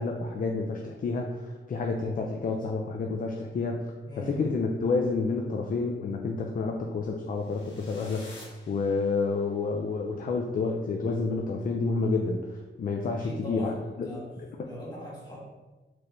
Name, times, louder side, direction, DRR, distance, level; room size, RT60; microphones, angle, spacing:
voice 1, 0.0-3.8 4.2-8.3 8.7-14.7, left 4 dB, 45° left, 2 dB, 0.4 m, -29 dB
voice 2, 4.1-4.4 13.1-14.3 14.6-15.4, equal, 20° left, -6 dB, 1.3 m, -40 dB
sound 1, 7.3-9.5, left 2 dB, 85° left, 1.4 m, -51 dB
4.5 x 3.1 x 2.6 m, 1.2 s
wide cardioid pair, 125°, 20 cm